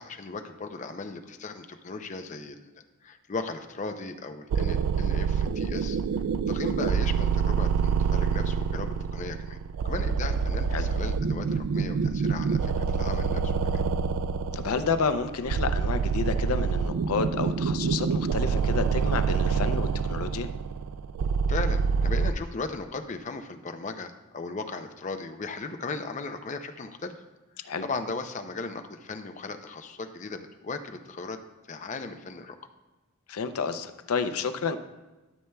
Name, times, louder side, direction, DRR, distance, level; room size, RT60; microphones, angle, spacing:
voice 1, 0.0-6.0 6.5-9.6 9.8-13.8 21.5-27.2 27.8-31.4 31.7-32.6, left 3 dB, 35° left, 7 dB, 0.4 m, -37 dB
sound 1, 4.5-22.3, right 5 dB, 90° right, 0.3 m, -27 dB
voice 2, 14.5-20.5 27.6-27.8 33.3-34.8, left 5 dB, 85° left, 10 dB, 0.5 m, -30 dB
12.5 x 6.8 x 2.2 m, 1.1 s
head